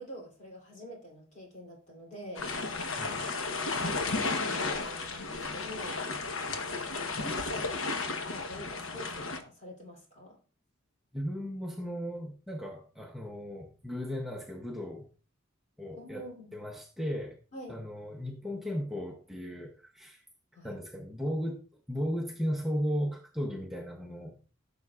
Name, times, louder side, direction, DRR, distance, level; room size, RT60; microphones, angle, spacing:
voice 1, 0.0-6.0 6.7-8.0 8.2-10.4 15.9-16.5 17.5-17.8 20.5-20.8, equal, 35° left, 3.1 m, -46 dB
sound 1, 2.4-9.4, left 3 dB, 75° left, 1.1 m, -33 dB
voice 2, 11.1-15.1 15.8-17.4 17.7-20.2 20.6-24.4, equal, ahead, 0.7 m, -36 dB
14.0 x 6.5 x 2.4 m
head